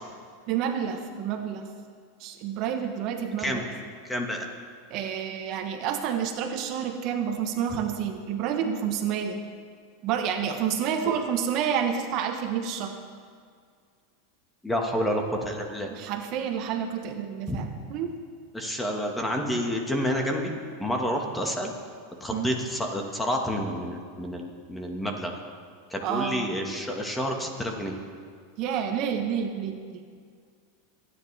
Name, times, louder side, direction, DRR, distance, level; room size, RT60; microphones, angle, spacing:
voice 1, 0.5-1.7 2.2-3.6 4.9-9.4 10.0-13.0 15.9-18.1 22.3-22.5 26.0-26.5 28.6-30.0, right 8 dB, 50° right, 5 dB, 1.1 m, -29 dB
voice 2, 4.0-4.5 11.1-11.2 14.6-15.9 17.5-17.6 18.5-20.5 20.8-21.7 22.2-25.3 25.9-27.9, equal, 10° left, 2 dB, 1.6 m, -29 dB
27.0 x 9.9 x 3.4 m, 2.1 s
supercardioid pair, 130°, 0 cm